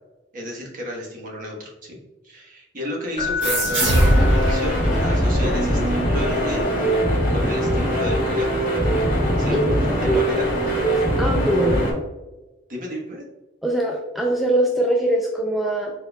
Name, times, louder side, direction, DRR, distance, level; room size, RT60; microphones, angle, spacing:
voice 1, 0.3-2.0 2.2-6.7 7.3-8.5 9.4-9.6 10.0-10.5 12.7-13.2, left 1 dB, 45° right, -1 dB, 1.1 m, -32 dB
Keyboard (musical), 3.2-5.1 8.4-8.5, left 5 dB, 30° left, 0.9 m, -30 dB
sound 1, 3.4-6.6, right 1 dB, 75° right, 1.3 m, -21 dB
sound 2, 3.8-11.9, equal, 45° left, 1.5 m, -22 dB
voice 2, 10.8-11.8 13.6-15.9, right 1 dB, ahead, -2 dB, 0.3 m, -22 dB
4.2 x 4.2 x 2.2 m, 1.1 s
head